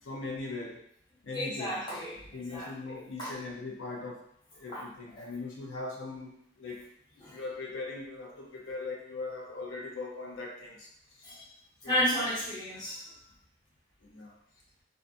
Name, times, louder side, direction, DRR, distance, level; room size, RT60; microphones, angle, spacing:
voice 1, 0.0-0.8 1.2-1.9 2.3-4.3 4.5-6.9 7.1-10.9 11.2-11.3 11.8-12.0 14.0-14.4, left 3 dB, 85° left, 0 dB, 0.6 m, -40 dB
voice 2, 1.3-2.2 2.5-2.7 3.2-3.3 4.7-4.8 7.2-7.4 11.2-11.4 11.8-13.0, equal, 25° left, -9 dB, 0.9 m, -32 dB
2.5 x 2.3 x 2.6 m, 0.68 s
head